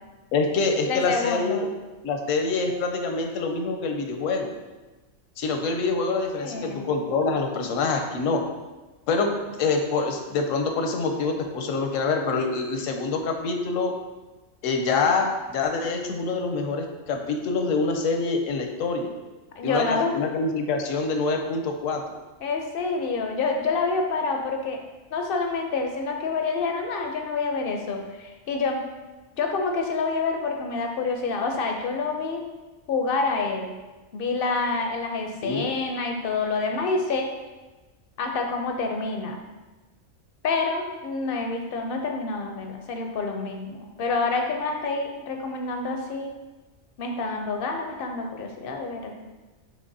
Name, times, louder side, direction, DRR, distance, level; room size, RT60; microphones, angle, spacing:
voice 1, 0.3-1.7 2.0-4.5 5.4-8.4 9.1-9.3 9.6-13.9 14.6-19.1 19.6-22.0 35.4-35.7, left 4 dB, 80° left, 4 dB, 1.0 m, -25 dB
voice 2, 0.9-1.7 6.3-6.9 19.6-20.2 22.4-24.8 25.1-28.8 29.4-32.4 32.9-33.7 34.1-37.3 38.2-39.4 40.4-46.3 47.0-49.2, left 4 dB, 65° left, 3 dB, 0.6 m, -27 dB
5.9 x 3.0 x 2.6 m, 1.2 s
omnidirectional pair, 1.3 m